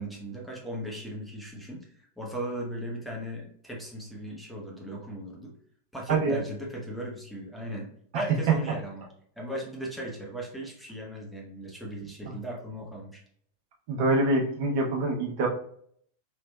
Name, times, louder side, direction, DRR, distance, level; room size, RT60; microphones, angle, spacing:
voice 1, 0.0-5.5 5.9-9.1 9.4-13.2, right 1 dB, ahead, -3 dB, 1.1 m, -37 dB
voice 2, 6.1-6.4 8.1-8.6 12.3-12.4 13.9-15.5, right 3 dB, 45° right, -1 dB, 1.0 m, -25 dB
4.6 x 3.2 x 2.2 m, 0.64 s
figure-of-eight pair, 90°, 0 cm